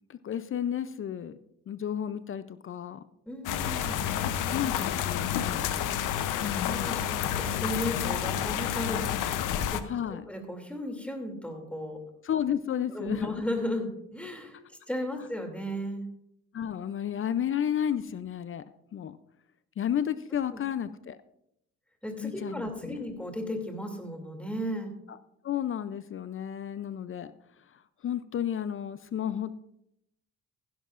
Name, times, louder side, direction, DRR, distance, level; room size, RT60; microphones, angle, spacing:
voice 1, 0.1-1.4 1.7-3.0 4.2-5.7 6.4-7.0 9.8-10.2 12.2-13.5 16.5-18.6 18.9-19.2 19.8-21.2 22.2-23.0 25.1-25.2 25.4-27.3 27.7-29.5, left 9 dB, 45° left, 14 dB, 0.5 m, -32 dB
voice 2, 3.3-4.0 6.3-9.4 9.7-9.8 10.3-12.0 12.9-14.6 14.9-16.0 20.5-20.6 22.0-24.9, equal, 5° left, 3 dB, 2.6 m, -35 dB
sound 1, 3.5-9.8, left 10 dB, 90° left, 0.7 m, -30 dB
15.5 x 11.0 x 2.5 m, 0.79 s
cardioid pair, 90°, 30 cm